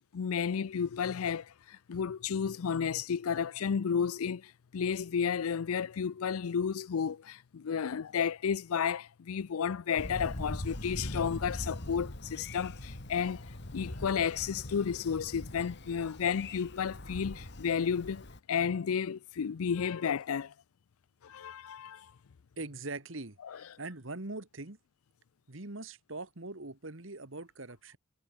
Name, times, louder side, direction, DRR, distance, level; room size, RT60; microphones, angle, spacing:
voice 1, 0.0-20.5 21.2-22.1 23.4-23.6, left 7 dB, 85° left, 0.5 m, -32 dB
Thunder, 10.0-18.4, left 1 dB, 55° left, 2.1 m, -42 dB
voice 2, 22.6-23.4 23.8-24.8 25.5-28.0, right 2 dB, 60° right, 2.0 m, -42 dB
head